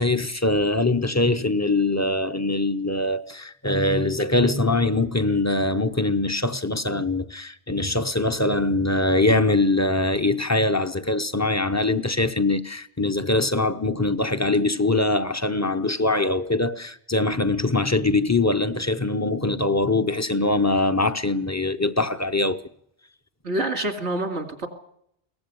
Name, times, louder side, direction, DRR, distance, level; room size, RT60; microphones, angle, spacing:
voice 1, 0.0-22.6, left 2 dB, 15° left, 0.7 m, -23 dB
voice 2, 23.4-24.7, right 1 dB, 85° right, 2.9 m, -27 dB
22.0 x 17.5 x 7.0 m
omnidirectional pair, 1.1 m